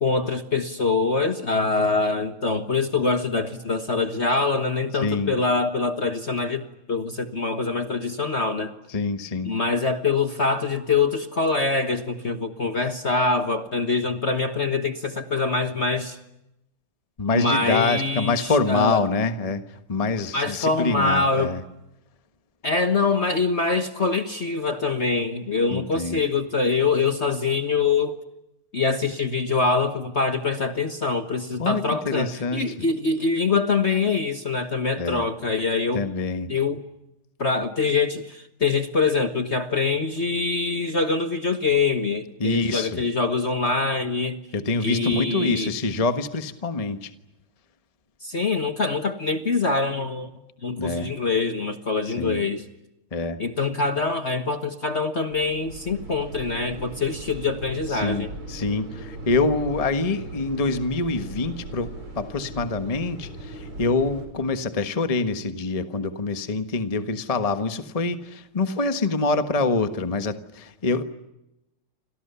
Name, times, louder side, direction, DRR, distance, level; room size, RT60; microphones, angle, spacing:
voice 1, 0.0-8.7 9.4-16.2 17.3-19.0 20.3-21.5 22.6-28.2 28.7-36.0 36.5-36.8 37.4-44.4 44.8-45.7 48.2-50.3 50.6-52.7 53.4-58.3, left 4 dB, 35° left, 8 dB, 1.4 m, -24 dB
voice 2, 5.0-5.3 8.9-9.5 17.2-21.6 25.7-26.2 31.6-32.7 35.0-35.2 35.9-36.5 42.4-43.0 44.5-47.1 50.8-51.1 52.0-52.4 53.1-53.4 57.9-71.0, left 3 dB, 20° left, 9 dB, 1.2 m, -25 dB
sound 1, 55.3-64.3, right 2 dB, 90° right, 6.9 m, -38 dB
29.5 x 27.0 x 6.9 m, 0.91 s
omnidirectional pair, 2.4 m